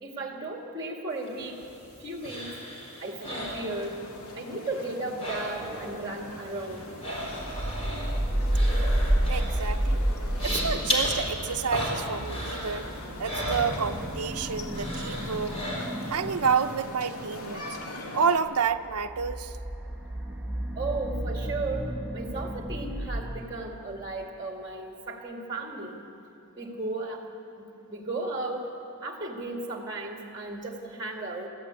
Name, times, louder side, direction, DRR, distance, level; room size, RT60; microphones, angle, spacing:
voice 1, 0.0-1.6 2.0-2.5 3.0-3.9 4.3-6.9 20.8-26.0 26.6-27.2 27.6-28.7 29.0-31.5, right 2 dB, 20° right, 1 dB, 2.1 m, -35 dB
sound 1, 1.3-4.3 4.6-5.9 6.2-14.4 14.7-16.2 16.6-16.7, equal, 30° left, 4.3 m, -35 dB
sound 2, 3.7-18.4, left 2 dB, 80° left, 2.0 m, -42 dB
sound 3, 5.6-23.4, right 1 dB, ahead, 1.3 m, -32 dB
voice 2, 9.3-10.1 10.4-12.9 13.2-15.6 16.1-17.6 18.1-19.6, right 6 dB, 90° right, 7 dB, 0.7 m, -29 dB
24.0 x 14.5 x 8.3 m, 2.9 s
head